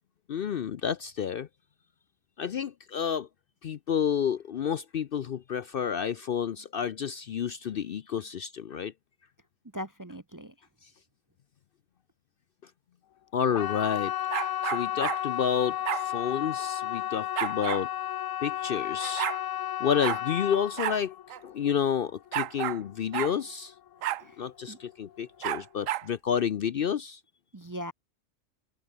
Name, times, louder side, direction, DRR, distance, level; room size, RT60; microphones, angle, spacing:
voice 1, 0.3-1.5 2.4-3.3 3.6-8.9 13.3-14.1 14.6-17.9 18.4-19.3 19.8-21.1 21.4-23.7 24.4-27.2, left 8 dB, 55° left, 0.7 m, -30 dB
voice 2, 9.7-10.5 24.2-24.8 27.5-27.9, equal, 20° right, 0.6 m, -40 dB
Hesa Fredrik, 13.5-24.3 24.6-25.2 25.6-25.7, left 11 dB, 80° left, 1.1 m, -33 dB
sound 1, 14.3-15.2 15.8-16.0 17.4-17.8 18.7-18.8 19.0-19.4 20.0-20.2 20.8-21.0 21.3-21.4 22.3-22.8 23.1-23.3 24.0-24.2 25.4-26.1, right 13 dB, 90° right, 1.0 m, -31 dB
open air
omnidirectional pair, 1.3 m